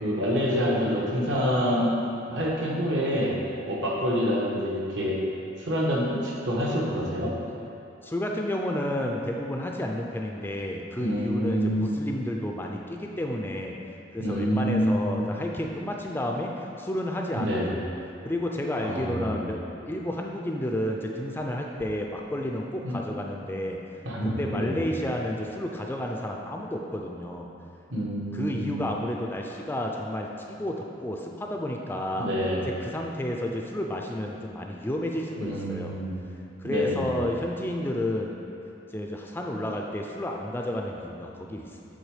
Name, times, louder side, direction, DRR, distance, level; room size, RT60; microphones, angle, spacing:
voice 1, 0.0-1.9 2.3-3.4 3.7-5.2 5.6-7.3 11.0-12.0 14.2-15.3 17.3-17.7 18.8-19.5 22.8-23.0 24.0-24.9 27.9-28.8 32.1-32.6 35.4-36.2 36.6-37.2, equal, 70° right, -4 dB, 1.3 m, -27 dB
voice 2, 8.0-13.8 14.1-17.7 18.2-19.6 19.9-23.8 24.2-27.5 28.3-32.3 32.8-36.0 36.6-38.4 38.9-42.0, left 1 dB, 10° left, 0 dB, 0.4 m, -31 dB
8.0 x 3.8 x 4.9 m, 2.7 s
head